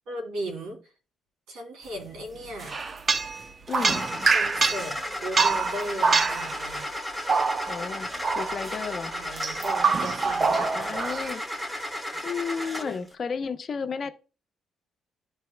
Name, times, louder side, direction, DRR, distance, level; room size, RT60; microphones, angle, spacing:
voice 1, 0.1-0.8 1.5-2.8 3.7-6.9 8.7-8.8 9.1-10.8, right 1 dB, 90° right, 3.0 m, -37 dB
sound 1, 2.6-5.0 5.4-6.8 7.3-7.9 8.2-8.8 9.4-11.3, right 4 dB, 40° right, 0.6 m, -25 dB
voice 2, 3.7-4.0 7.7-9.1 10.5-11.4 12.2-14.1, left 5 dB, 50° left, 0.9 m, -33 dB
Car / Engine starting, 3.8-13.1, equal, 15° right, 1.7 m, -34 dB
12.5 x 4.5 x 2.3 m
cardioid pair, 90°, 0 cm